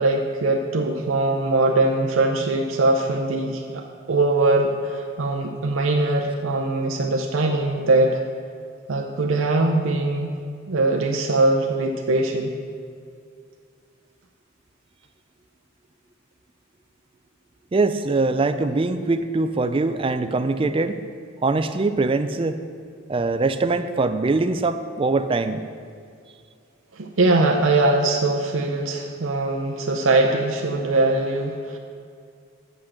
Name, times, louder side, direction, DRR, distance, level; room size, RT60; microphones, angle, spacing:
voice 1, 0.0-8.2 8.9-10.3 10.7-12.5 26.9-31.8, right 2 dB, 70° right, 2 dB, 0.6 m, -21 dB
voice 2, 17.7-21.0 21.4-22.6 23.1-25.6, right 3 dB, 25° right, 10 dB, 0.3 m, -22 dB
8.2 x 5.9 x 6.4 m, 2.2 s
head